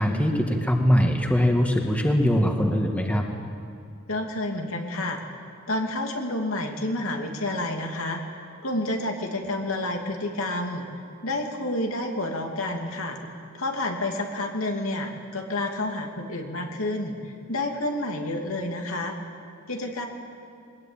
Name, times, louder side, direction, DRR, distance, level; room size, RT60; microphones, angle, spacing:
voice 1, 0.0-3.2, equal, 5° left, 2 dB, 1.8 m, -22 dB
voice 2, 4.1-5.2 5.7-10.9 11.2-13.2 13.5-19.2 19.7-20.1, left 1 dB, 80° left, 2 dB, 2.7 m, -29 dB
22.0 x 20.0 x 9.0 m, 2.4 s
head